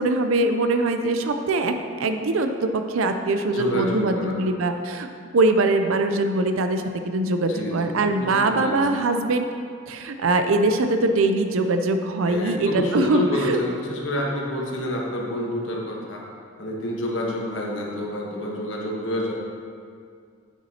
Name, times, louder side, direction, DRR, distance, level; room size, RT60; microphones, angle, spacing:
voice 1, 0.0-5.1 5.3-9.5 9.9-13.6, right 2 dB, 75° right, 7 dB, 0.5 m, -22 dB
voice 2, 3.5-4.3 7.5-8.8 12.3-16.2 16.6-19.3, left 1 dB, 60° left, -2 dB, 1.2 m, -28 dB
9.2 x 7.1 x 2.8 m, 2.3 s
head